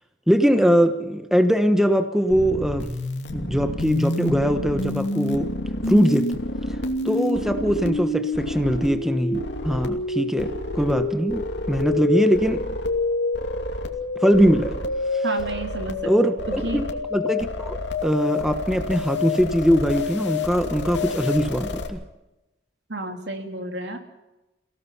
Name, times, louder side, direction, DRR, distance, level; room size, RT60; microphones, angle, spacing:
voice 1, 0.3-2.9 3.3-5.5 5.9-6.4 7.0-12.6 14.2-14.8 15.1-15.2 16.0-16.8 17.1-17.8 18.0-22.0, equal, 5° right, 7 dB, 1.1 m, -21 dB
sound 1, 2.3-21.9, left 2 dB, 85° left, 2.6 m, -28 dB
voice 2, 15.2-16.1 16.5-16.8 22.9-24.0, right 1 dB, 75° right, 4 dB, 3.0 m, -31 dB
29.0 x 17.0 x 5.7 m, 1.0 s
head